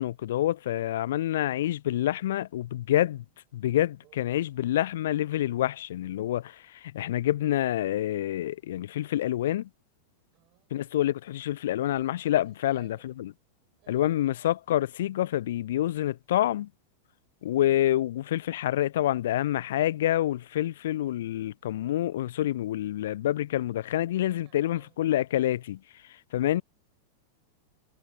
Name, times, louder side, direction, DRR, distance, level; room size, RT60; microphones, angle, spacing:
voice 1, 0.0-3.2 3.5-9.7 10.7-13.3 13.9-16.7 17.4-25.8 26.3-26.6, left 13 dB, 60° left, 0.4 m, -27 dB
voice 2, 4.0-4.6 10.3-10.7 12.4-13.1 13.8-14.3 24.3-25.0, right 21 dB, 40° right, 6.5 m, -59 dB
figure-of-eight pair, 90°, 0 cm